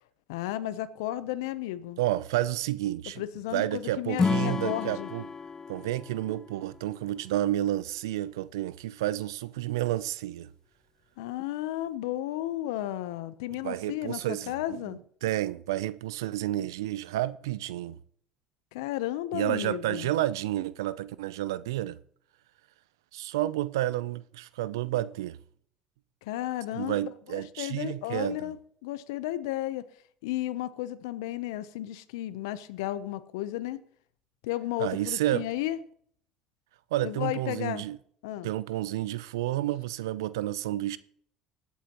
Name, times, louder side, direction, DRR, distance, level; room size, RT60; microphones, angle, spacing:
voice 1, 0.3-2.0 3.2-5.1 11.2-15.0 18.7-20.1 26.2-28.6 28.8-29.8 30.2-33.8 34.4-35.8 37.0-37.8 38.2-38.5, left 14 dB, 85° left, 0.7 m, -33 dB
voice 2, 2.0-3.2 3.5-5.3 5.7-10.5 13.6-18.0 19.3-22.0 23.1-25.4 26.7-28.5 34.8-35.5 36.9-38.0 38.4-41.0, right 14 dB, 90° right, 0.5 m, -30 dB
Acoustic guitar / Strum, 4.1-7.4, left 4 dB, 25° left, 0.4 m, -31 dB
20.0 x 8.3 x 3.0 m
hypercardioid pair, 70°, 2 cm